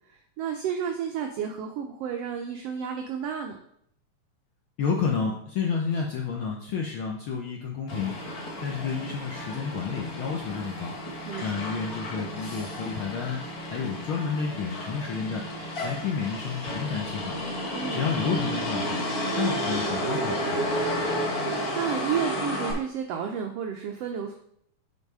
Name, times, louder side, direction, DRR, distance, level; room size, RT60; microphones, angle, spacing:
voice 1, 0.1-3.6 11.3-11.8 17.7-18.1 21.4-24.3, right 8 dB, 75° right, 4 dB, 1.4 m, -32 dB
voice 2, 4.8-8.1 8.6-10.9 11.4-13.4 13.7-15.4 15.8-17.3 17.9-19.0 19.4-20.7, left 6 dB, 80° left, 0 dB, 1.1 m, -30 dB
Motor vehicle (road), 7.9-22.7, equal, 40° left, 1.5 m, -32 dB
7.9 x 4.7 x 4.8 m, 0.70 s
omnidirectional pair, 3.5 m